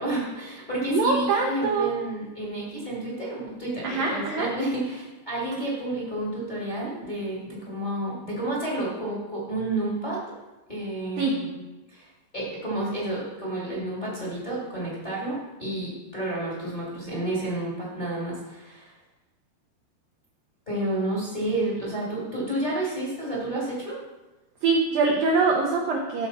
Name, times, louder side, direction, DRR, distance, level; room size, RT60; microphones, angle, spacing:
voice 1, 0.0-10.2 10.7-11.4 11.9-18.9 20.6-24.0, right 1 dB, 20° left, -7 dB, 1.1 m, -30 dB
voice 2, 0.9-1.9 3.8-4.5 11.2-11.3 24.6-26.3, right 4 dB, 80° right, 0 dB, 2.0 m, -23 dB
14.0 x 4.9 x 4.2 m, 1.1 s
omnidirectional pair, 5.1 m